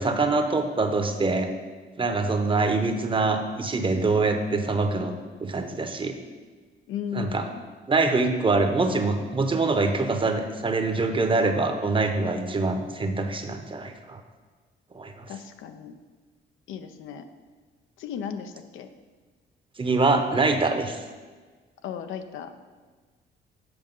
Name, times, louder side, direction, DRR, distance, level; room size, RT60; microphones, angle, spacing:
voice 1, 0.0-1.5 2.0-6.2 7.1-7.5 7.9-14.2 14.9-15.3 19.8-21.0, right 3 dB, 25° right, 6 dB, 0.8 m, -24 dB
voice 2, 6.9-7.6 15.3-15.9 16.7-17.2 18.0-18.9 21.8-22.5, left 8 dB, 85° left, 8 dB, 0.6 m, -35 dB
7.9 x 4.9 x 5.3 m, 1.4 s
cardioid pair, 90°, 20 cm